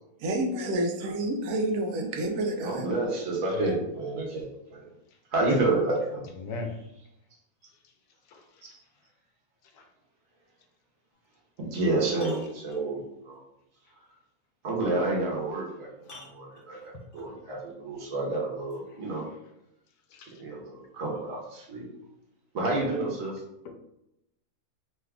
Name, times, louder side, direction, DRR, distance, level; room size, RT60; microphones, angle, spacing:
voice 1, 0.2-2.8, right 1 dB, 75° right, 1.1 m, -29 dB
voice 2, 2.6-4.9 5.3-6.3 8.6-8.7 11.6-13.4 14.6-15.9 16.2-19.2 20.4-21.9 22.5-23.4, right 2 dB, 60° right, 1.3 m, -29 dB
voice 3, 6.4-6.8 8.3-8.7 9.7-9.9 16.7-16.8 17.3-17.4 20.1-20.4 23.6-23.7, left 3 dB, 90° left, 1.1 m, -38 dB
sound 1, 11.1-11.2 11.7-13.2 15.2-15.3 16.0-17.3 18.7-18.8, left 2 dB, 50° left, 0.7 m, -50 dB
3.2 x 2.3 x 3.5 m
omnidirectional pair, 1.6 m